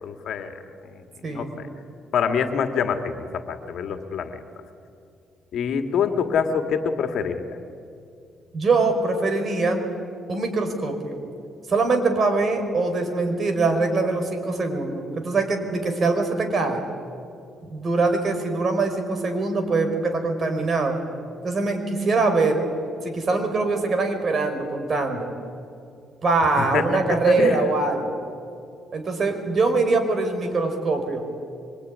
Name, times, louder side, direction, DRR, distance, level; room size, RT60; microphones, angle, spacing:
voice 1, 0.0-1.0 1.3-1.7 2.1-4.4 5.5-7.6 26.6-27.6, left 6 dB, 65° left, 6 dB, 2.4 m, -26 dB
voice 2, 8.5-9.8 10.3-11.2 11.7-16.8 17.6-21.0 21.4-22.7 23.0-25.3 26.2-28.2 28.9-31.4, right 3 dB, 40° right, 5 dB, 4.8 m, -23 dB
25.0 x 24.5 x 9.7 m, 2.4 s
cardioid pair, 120°, 0 cm